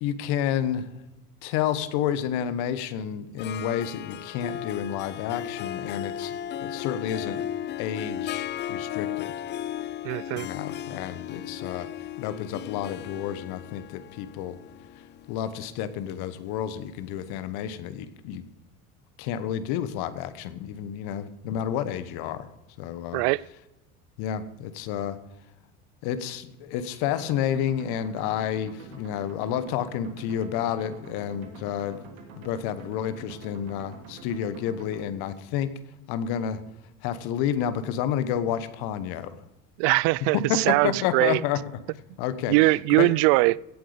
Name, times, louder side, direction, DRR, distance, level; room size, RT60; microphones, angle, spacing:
voice 1, 0.0-0.9 1.4-7.4 7.8-9.3 10.3-11.9 12.2-14.6 15.3-18.4 19.2-22.5 22.8-23.2 24.2-25.2 26.0-32.0 32.4-35.7 36.1-36.6 37.0-39.4 40.3-41.6 42.2-42.6 43.0-43.1, left 9 dB, 65° left, 1.3 m, -30 dB
Harp, 3.4-16.9, left 11 dB, 30° left, 0.4 m, -36 dB
voice 2, 10.0-10.5 23.1-23.4 39.8-41.4 42.5-43.6, right 22 dB, 60° right, 0.5 m, -21 dB
sound 1, 27.0-35.0, right 4 dB, 80° right, 2.5 m, -46 dB
16.5 x 7.8 x 5.1 m
hypercardioid pair, 80°, 41 cm